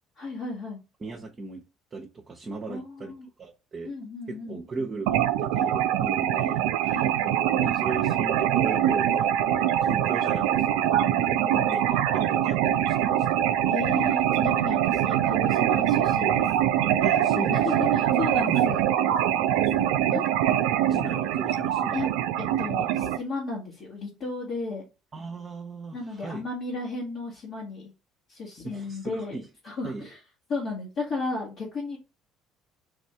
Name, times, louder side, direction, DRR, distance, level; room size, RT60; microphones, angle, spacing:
voice 1, 0.2-0.8 2.7-3.3 3.8-4.6 6.8-7.4 11.2-11.8 13.7-16.5 17.5-18.9 19.8-20.2 21.9-22.1 22.6-24.9 25.9-27.9 28.3-29.4 29.6-30.2 30.5-32.0, left 3 dB, 55° left, 1.3 m, -34 dB
voice 2, 1.0-1.6 1.9-3.1 3.4-3.9 4.3-6.7 7.6-9.3 9.6-11.1 11.6-11.9 12.1-13.3 17.0-18.0 18.5-18.8 19.3-19.5 20.9-22.1 25.1-26.4 28.6-29.5 29.8-30.1, right 3 dB, 35° right, 0.8 m, -37 dB
sound 1, 5.1-23.2, right 11 dB, 70° right, 0.3 m, -24 dB
3.5 x 2.6 x 3.3 m
figure-of-eight pair, 55°, 0 cm